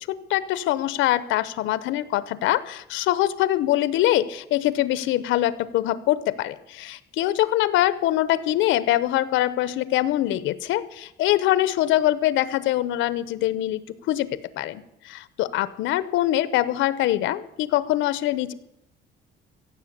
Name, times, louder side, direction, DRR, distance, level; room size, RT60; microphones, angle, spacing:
voice 1, 0.1-13.8 14.1-18.5, left 14 dB, 90° left, 16 dB, 0.9 m, -23 dB
15.5 x 7.8 x 8.1 m, 0.86 s
cardioid pair, 140°, 19 cm